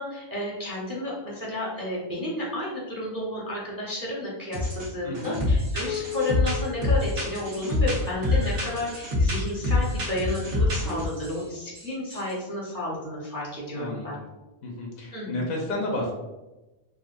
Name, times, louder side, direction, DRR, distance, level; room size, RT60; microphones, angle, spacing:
voice 1, 0.0-14.1 15.1-15.5, left 1 dB, 20° right, -5 dB, 0.6 m, -32 dB
sound 1, 4.5-4.9 5.1-11.4 11.8-12.3, left 2 dB, 60° right, 1.3 m, -26 dB
voice 2, 5.0-5.5 13.7-14.2 14.6-16.1, left 1 dB, 80° left, -1 dB, 1.1 m, -32 dB
Piano, 5.9-9.1, left 13 dB, 60° left, 0.6 m, -38 dB
sound 2, 8.0-11.2, right 2 dB, 80° right, 1.3 m, -48 dB
4.0 x 2.4 x 2.4 m, 1.0 s
omnidirectional pair, 1.4 m